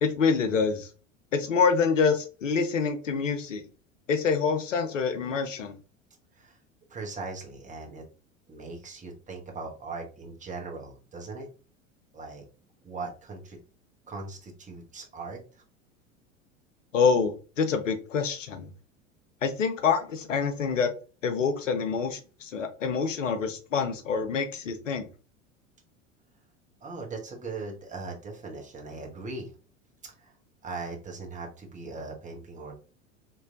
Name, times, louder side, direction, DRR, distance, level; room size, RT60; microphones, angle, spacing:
voice 1, 0.0-0.9 1.3-3.6 4.1-5.7 16.9-18.7 19.4-20.9 21.2-25.1, left 5 dB, 70° left, 8 dB, 0.8 m, -26 dB
voice 2, 6.9-8.0 8.5-11.5 12.1-12.4 12.8-13.6 14.1-15.6 26.8-29.5 30.0-30.3 30.6-32.7, right 3 dB, 20° right, 0 dB, 1.2 m, -39 dB
4.3 x 3.2 x 2.5 m, 0.35 s
figure-of-eight pair, 80°, 39 cm